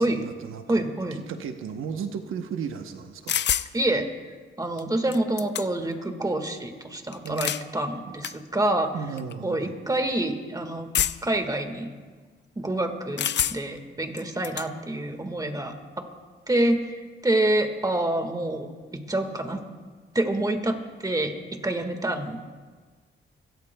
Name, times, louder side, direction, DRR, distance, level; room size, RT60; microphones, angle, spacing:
voice 1, 0.0-0.8 1.1-3.3 7.2-7.6 8.9-9.7, right 6 dB, 90° right, 6 dB, 0.9 m, -35 dB
voice 2, 0.7-1.2 3.7-4.1 4.6-8.9 9.4-10.9 11.2-11.9 12.5-16.1 16.5-19.6 20.1-22.4, right 1 dB, 20° right, 6 dB, 1.7 m, -27 dB
sound 1, 3.3-3.7 4.8-4.9 5.1-5.9 7.1-7.7 8.2-8.3 9.2-9.3 10.9-11.4 13.2-13.8 14.2-14.7, left 9 dB, 60° left, 0.5 m, -27 dB
23.5 x 17.0 x 2.3 m, 1.4 s
cardioid pair, 80°, 21 cm